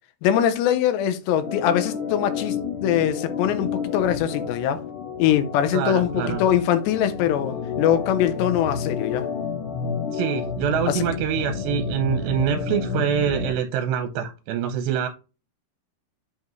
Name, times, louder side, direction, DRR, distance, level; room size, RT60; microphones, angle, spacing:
voice 1, 0.2-4.8 5.2-9.3 10.9-11.1, left 10 dB, 85° left, 3.0 m, -22 dB
Organ, 1.4-13.6, left 5 dB, 70° left, 4.0 m, -30 dB
voice 2, 5.7-6.4 10.1-15.1, right 9 dB, 80° right, 2.9 m, -25 dB
8.0 x 5.0 x 3.1 m
omnidirectional pair, 4.9 m